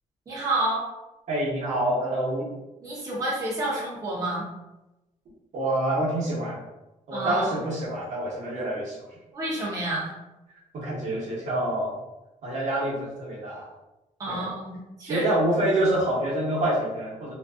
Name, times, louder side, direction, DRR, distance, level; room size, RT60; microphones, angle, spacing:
voice 1, 0.3-0.8 2.8-4.5 7.1-7.5 9.3-10.1 14.2-15.3, right 1 dB, 25° right, -6 dB, 0.6 m, -29 dB
voice 2, 1.3-2.5 5.5-6.6 7.1-9.1 10.7-12.0 12.4-13.7 14.3-14.5 15.0-17.3, right 1 dB, 65° right, -5 dB, 0.9 m, -26 dB
2.5 x 2.2 x 2.3 m, 0.99 s
wide cardioid pair, 160°, 13 cm